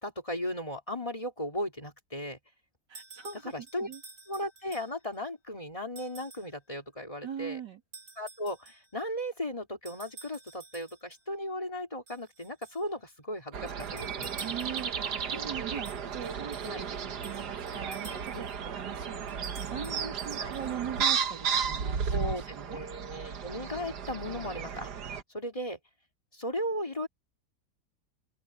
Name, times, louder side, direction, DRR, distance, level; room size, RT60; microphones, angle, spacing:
voice 1, 0.0-2.4 3.4-3.9 4.3-7.6 8.2-14.3 16.7-16.8 18.3-18.4 20.4-20.5 22.1-22.4 22.7-24.9 25.3-25.8 26.3-27.1, left 1 dB, 20° left, 3.1 m, -36 dB
sound 1, 2.9-5.2 6.0-6.5 7.9-8.9 9.8-11.2 12.1-12.9 13.7-15.1 15.8-18.6 19.3-21.0, right 4 dB, 45° right, 5.0 m, -51 dB
voice 2, 2.9-3.5 3.8-4.0 7.2-7.8 14.4-16.9 17.2-22.8, right 7 dB, 90° right, 3.3 m, -40 dB
sound 2, 13.5-25.2, right 7 dB, 70° right, 1.9 m, -34 dB
open air
omnidirectional pair, 1.8 m